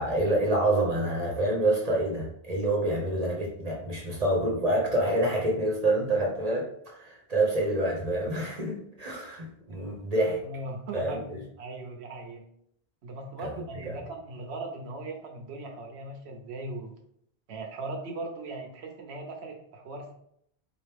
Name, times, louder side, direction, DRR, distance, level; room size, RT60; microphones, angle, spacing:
voice 1, 0.0-10.4 10.9-11.4 13.9-14.0, right 1 dB, 40° right, -2 dB, 1.0 m, -27 dB
voice 2, 10.4-12.4 13.0-16.9 17.5-20.1, right 2 dB, 80° right, 2 dB, 1.0 m, -39 dB
4.3 x 3.0 x 3.4 m, 0.69 s
omnidirectional pair, 1.1 m